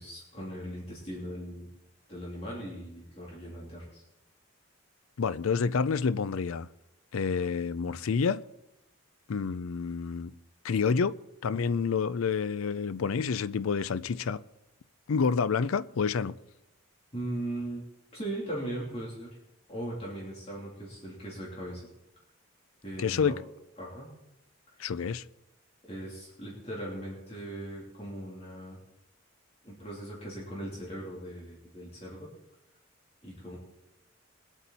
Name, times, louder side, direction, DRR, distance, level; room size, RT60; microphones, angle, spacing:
voice 1, 0.0-1.7 2.1-4.0 17.1-17.8 18.1-19.3 19.7-21.8 22.8-23.4 23.8-24.1 24.7-24.9 25.8-28.8 29.6-32.3 33.2-33.6, right 1 dB, 30° left, 3.3 m, -39 dB
voice 2, 5.2-6.7 7.1-8.4 9.3-10.3 10.6-14.4 15.1-16.3 23.0-23.3 24.8-25.2, left 5 dB, 75° left, 0.5 m, -28 dB
22.0 x 8.3 x 4.2 m
head